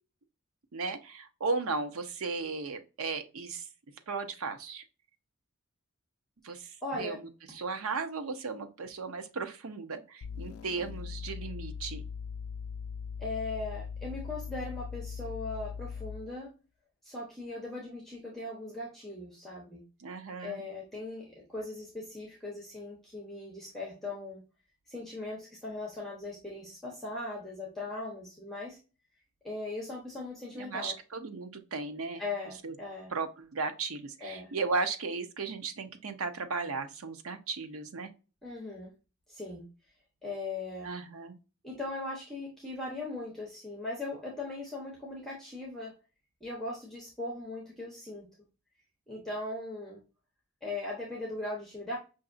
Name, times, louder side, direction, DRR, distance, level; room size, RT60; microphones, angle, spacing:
voice 1, 0.7-3.7 4.1-4.8 6.4-12.1 20.0-20.6 30.5-32.2 32.6-32.7 33.1-38.1 40.8-41.4, right 4 dB, 85° right, 8 dB, 0.7 m, -36 dB
voice 2, 6.8-7.2 13.2-16.5 17.0-19.8 20.4-24.4 24.9-28.8 29.4-30.9 32.2-33.1 34.2-34.5 38.4-38.9 39.3-39.7 40.2-40.9 41.6-45.9 46.4-48.3 49.1-50.0 50.6-52.0, left 2 dB, ahead, -3 dB, 0.9 m, -39 dB
sound 1, 10.2-16.4, left 6 dB, 85° left, 0.3 m, -40 dB
5.7 x 2.6 x 2.5 m, 0.32 s
head